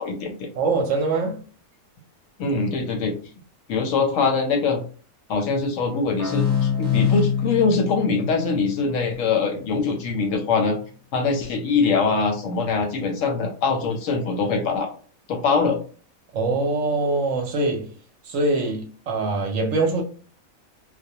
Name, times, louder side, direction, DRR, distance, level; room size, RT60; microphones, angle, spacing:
voice 1, 0.0-0.5 2.4-3.1 3.7-4.8 5.3-10.8 11.1-14.9 15.3-15.8, left 4 dB, 70° left, 0.8 m, -23 dB
voice 2, 0.6-1.4 16.3-17.9 18.2-20.0, right 3 dB, 70° right, 0.8 m, -23 dB
sound 1, 6.2-9.6, left 8 dB, 30° left, 0.5 m, -25 dB
2.3 x 2.1 x 2.7 m
omnidirectional pair, 1.5 m